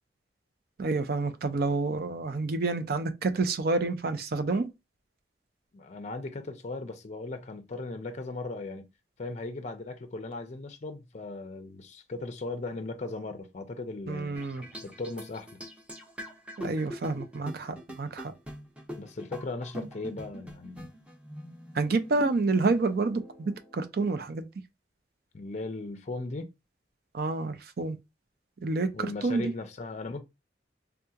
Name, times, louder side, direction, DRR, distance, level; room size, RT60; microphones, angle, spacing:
voice 1, 0.8-4.7 14.1-14.6 16.6-18.3 21.7-24.5 27.1-28.0 28.6-29.5, right 3 dB, 60° right, 0.5 m, -28 dB
voice 2, 5.7-8.9 9.2-14.4 14.8-15.6 19.0-20.9 25.3-26.5 28.9-30.2, left 3 dB, 40° left, 0.5 m, -37 dB
sound 1, 14.3-23.8, equal, 5° right, 0.7 m, -44 dB
3.5 x 2.8 x 2.3 m
head